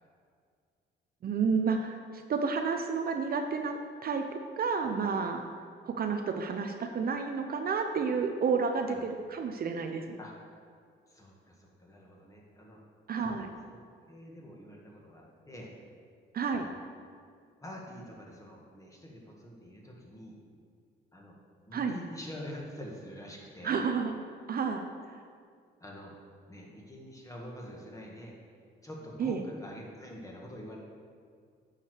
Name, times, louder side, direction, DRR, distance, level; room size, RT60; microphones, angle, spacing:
voice 1, 1.2-5.4 5.8-10.2 13.1-13.5 16.3-16.7 21.7-22.0 23.6-24.1 24.5-24.8 29.2-29.4, right 5 dB, 50° right, 5 dB, 0.7 m, -30 dB
voice 2, 11.1-12.8 13.2-15.7 16.6-16.8 17.6-20.4 21.1-21.4 21.7-23.8 25.8-26.1 26.5-28.3 28.8-30.8, equal, 15° left, -2 dB, 2.0 m, -46 dB
8.6 x 4.9 x 6.5 m, 2.1 s
cardioid pair, 90°, 20 cm